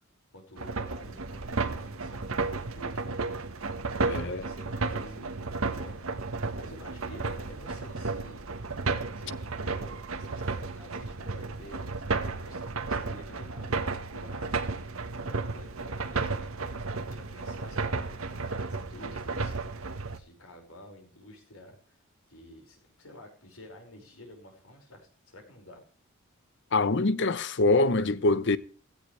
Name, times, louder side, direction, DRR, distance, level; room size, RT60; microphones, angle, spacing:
voice 1, 0.3-3.3 3.8-8.4 9.1-12.1 12.4-14.8 15.3-22.0 22.3-25.8, left 1 dB, 75° left, 5.4 m, -51 dB
sound 1, 0.6-20.2, right 3 dB, 75° right, 1.4 m, -33 dB
voice 2, 4.1-4.4 26.7-28.6, left 2 dB, 55° left, 0.8 m, -24 dB
17.0 x 15.0 x 3.3 m
head